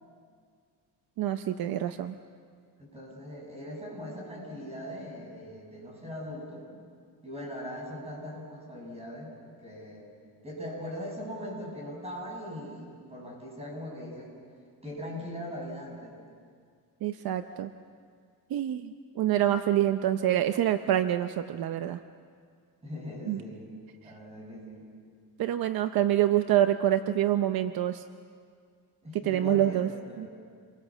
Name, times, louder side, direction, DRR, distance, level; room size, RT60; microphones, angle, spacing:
voice 1, 1.2-2.2 17.0-17.7 18.5-22.0 23.3-23.4 25.4-28.0 29.2-29.9 30.2-30.3, right 12 dB, 70° right, 9 dB, 0.8 m, -26 dB
voice 2, 2.8-6.7 7.2-9.3 9.6-10.1 10.4-14.3 14.8-16.1 22.8-23.8 24.0-24.9 29.0-30.3, equal, 15° right, -2 dB, 7.1 m, -40 dB
28.5 x 23.0 x 7.3 m, 2.1 s
cardioid pair, 175°, 38 cm